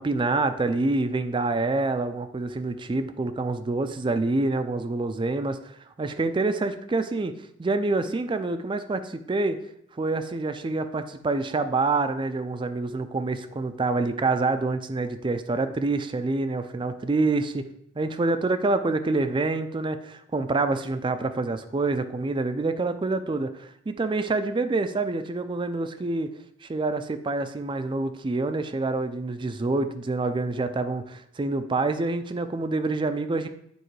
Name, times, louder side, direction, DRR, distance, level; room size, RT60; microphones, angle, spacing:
voice 1, 0.0-9.6 10.0-17.7 18.0-26.3 26.6-33.5, right 3 dB, 25° right, 10 dB, 0.4 m, -27 dB
7.9 x 4.5 x 3.2 m, 0.73 s
head